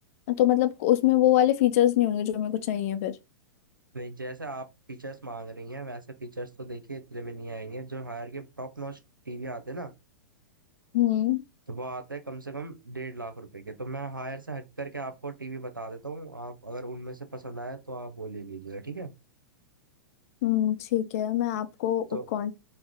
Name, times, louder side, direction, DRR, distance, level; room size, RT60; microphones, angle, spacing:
voice 1, 0.3-3.2 10.9-11.4 20.4-22.1 22.3-22.5, left 13 dB, 45° left, 0.6 m, -24 dB
voice 2, 3.9-9.0 9.3-9.9 11.7-19.1 22.1-22.3, right 2 dB, 85° right, 0.7 m, -38 dB
4.4 x 2.1 x 3.6 m
figure-of-eight pair, 100°, 11 cm